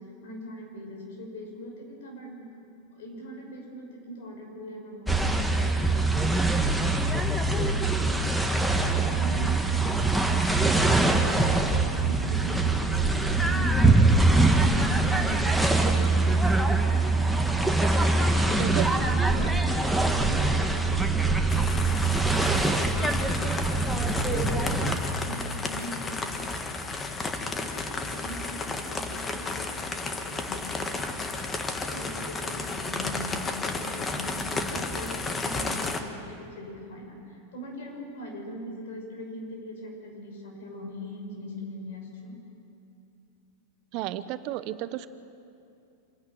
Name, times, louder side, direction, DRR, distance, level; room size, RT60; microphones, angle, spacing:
voice 1, 0.0-2.5 2.9-6.8 7.4-8.1 8.4-9.8 10.2-17.2 17.4-19.8 20.1-26.5 27.0-31.5 31.9-42.4, equal, 70° left, 1 dB, 6.5 m, -41 dB
sound 1, 5.1-25.0, right 2 dB, ahead, 1.6 m, -23 dB
sound 2, 21.5-36.0, left 3 dB, 20° left, 1.6 m, -33 dB
voice 2, 43.9-45.1, right 15 dB, 50° right, 13 dB, 0.8 m, -32 dB
26.5 x 10.5 x 9.3 m, 2.6 s
hypercardioid pair, 110°, 0 cm